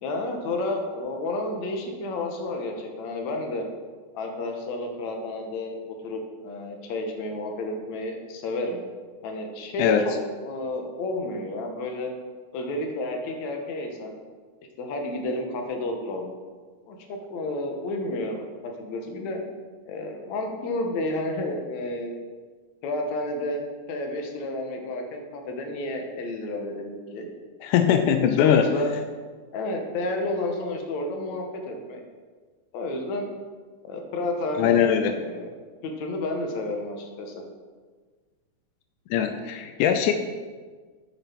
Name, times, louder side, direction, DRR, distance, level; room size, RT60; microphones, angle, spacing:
voice 1, 0.0-3.7 4.1-5.8 6.0-8.8 9.2-12.1 12.5-14.2 14.8-16.4 16.9-19.4 19.9-22.1 22.8-27.3 28.4-28.9 29.5-32.0 32.7-33.3 33.8-35.6 35.8-37.4, left 2 dB, 70° left, 3 dB, 2.5 m, -31 dB
voice 2, 27.6-28.7 34.6-35.1 39.1-40.1, left 9 dB, 90° left, 6 dB, 2.2 m, -21 dB
9.9 x 6.8 x 6.0 m, 1.5 s
omnidirectional pair, 3.5 m